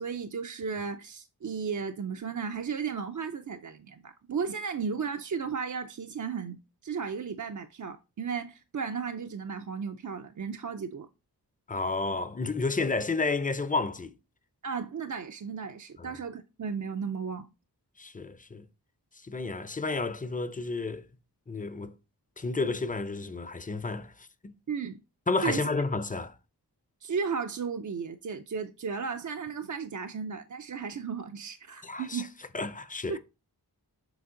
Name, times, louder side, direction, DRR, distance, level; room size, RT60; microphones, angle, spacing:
voice 1, 0.0-6.6 6.8-11.1 14.6-17.5 24.7-25.0 25.4-25.7 27.0-32.3 33.1-33.2, right 6 dB, 50° right, 0.5 m, -34 dB
voice 2, 11.7-14.1 16.0-16.1 18.0-18.7 19.3-21.0 21.5-21.9 22.4-24.5 25.3-26.3 31.8-32.2 32.5-33.2, left 3 dB, 20° left, 0.5 m, -31 dB
7.0 x 3.6 x 3.8 m
wide cardioid pair, 50°, 40 cm